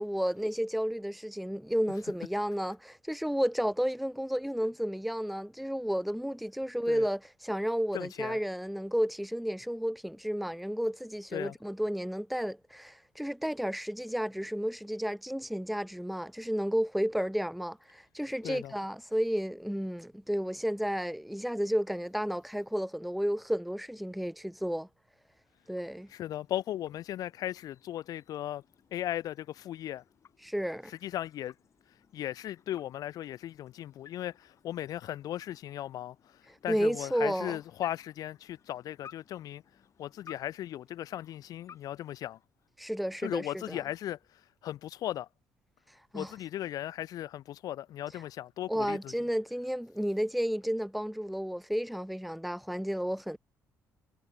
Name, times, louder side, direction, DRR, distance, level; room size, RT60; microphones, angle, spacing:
voice 1, 0.0-24.9 25.7-26.1 30.4-30.9 36.7-37.6 42.8-43.8 46.1-46.3 48.7-53.4, equal, ahead, 0.4 m, -32 dB
voice 2, 7.9-8.4 11.3-11.6 18.4-18.7 26.1-28.6 28.9-30.0 30.9-31.5 32.1-39.6 40.0-42.4 43.2-45.3 46.1-49.1, left 12 dB, 70° left, 0.6 m, -37 dB
sound 1, 25.2-43.0, left 8 dB, 50° left, 1.0 m, -59 dB
cardioid pair, 85°, 7 cm